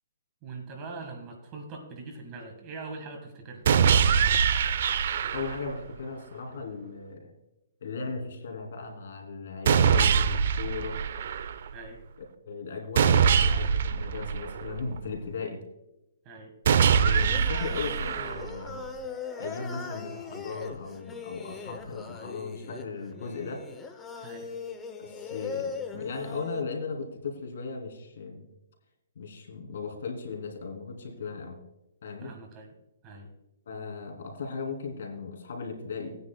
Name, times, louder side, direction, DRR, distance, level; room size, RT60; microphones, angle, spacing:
voice 1, 0.4-3.7 11.7-12.0 16.2-16.5 24.1-24.5 32.2-32.7 33.0-33.3, right 3 dB, 25° right, 2 dB, 1.5 m, -42 dB
sound 1, 3.7-5.7 9.7-11.7 13.0-15.0 16.7-18.7, right 7 dB, 55° right, 0.5 m, -23 dB
voice 2, 5.3-7.3 7.8-11.0 12.5-15.6 17.0-18.9 19.4-23.6 25.0-28.5 29.2-31.6 32.0-32.3 33.7-36.2, left 4 dB, 65° left, 2 dB, 2.6 m, -37 dB
Singing, 17.1-26.6, left 5 dB, 10° left, 0.7 m, -40 dB
18.0 x 9.5 x 2.2 m, 0.92 s
hypercardioid pair, 160°, 0 cm